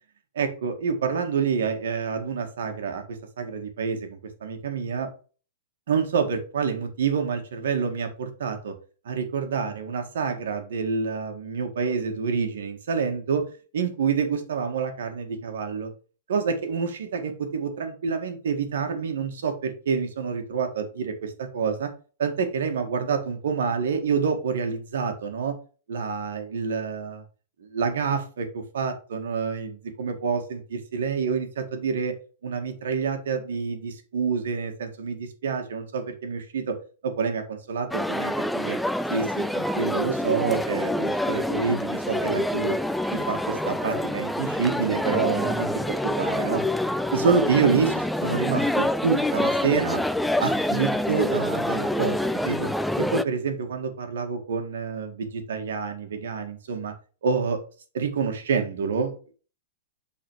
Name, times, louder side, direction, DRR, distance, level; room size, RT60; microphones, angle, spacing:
voice 1, 0.4-5.1 5.9-8.7 9.1-13.4 13.7-15.9 16.3-21.9 22.2-25.6 25.9-27.2 27.6-32.1 32.4-36.7 37.0-38.8 39.1-42.8 43.1-46.6 47.1-50.0 50.4-52.7 53.0-56.9 57.2-57.6 57.9-59.1, right 5 dB, 80° right, 6 dB, 1.9 m, -27 dB
sound 1, 37.9-53.2, left 1 dB, ahead, 0.3 m, -26 dB
7.4 x 4.2 x 4.7 m, 0.38 s
hypercardioid pair, 150°, 0 cm